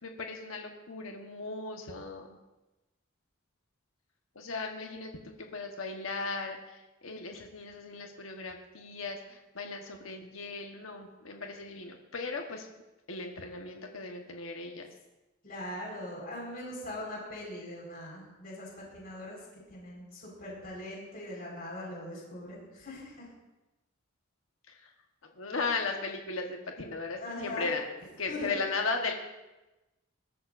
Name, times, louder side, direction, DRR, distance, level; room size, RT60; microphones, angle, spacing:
voice 1, 0.0-2.3 4.3-12.7 13.1-14.9 24.7-24.9 25.4-27.9 28.2-29.1, left 3 dB, 85° left, 2 dB, 1.2 m, -37 dB
voice 2, 15.4-19.4 19.7-23.3 27.2-27.7 28.3-28.5, left 1 dB, 45° left, -3 dB, 4.7 m, -41 dB
22.0 x 13.0 x 2.6 m, 1.0 s
head